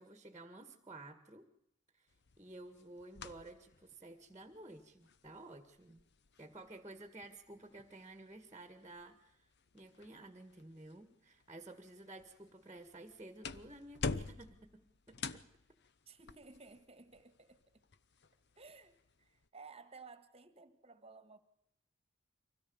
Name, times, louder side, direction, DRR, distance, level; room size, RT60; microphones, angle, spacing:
voice 1, 0.0-1.5 2.0-2.1 2.4-6.0 6.4-9.4 9.7-14.8 15.1-15.4, right 2 dB, 15° right, 7 dB, 1.8 m, -53 dB
sound 1, 2.1-19.5, left 4 dB, 55° left, 0.8 m, -49 dB
voice 2, 16.0-17.8 18.5-21.4, right 4 dB, 30° right, 10 dB, 1.6 m, -56 dB
24.5 x 17.0 x 7.1 m, 0.79 s
head